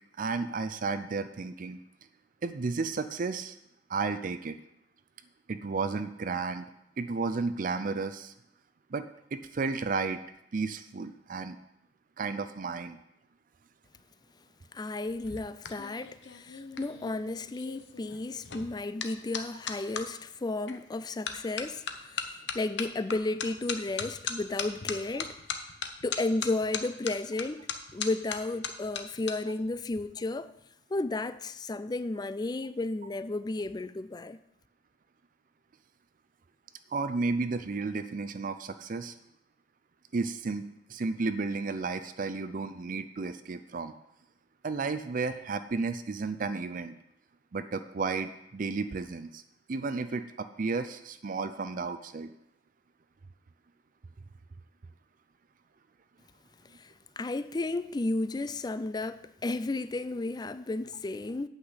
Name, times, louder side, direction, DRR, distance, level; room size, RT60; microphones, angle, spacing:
voice 1, 0.2-1.8 2.4-3.6 3.9-4.6 5.5-6.7 7.0-8.3 8.9-10.2 10.5-11.6 12.2-13.0 36.9-39.1 40.1-43.9 44.6-47.0 47.5-49.4 49.7-52.3, right 4 dB, 50° right, 0.5 m, -33 dB
voice 2, 14.7-25.4 26.0-27.7 27.9-30.5 30.9-34.4 56.8-61.5, left 2 dB, 25° left, 0.4 m, -33 dB
sound 1, 15.0-20.0 20.7-21.0 21.3-29.3 29.6-30.0, left 7 dB, 75° left, 0.9 m, -38 dB
8.7 x 5.7 x 8.0 m
head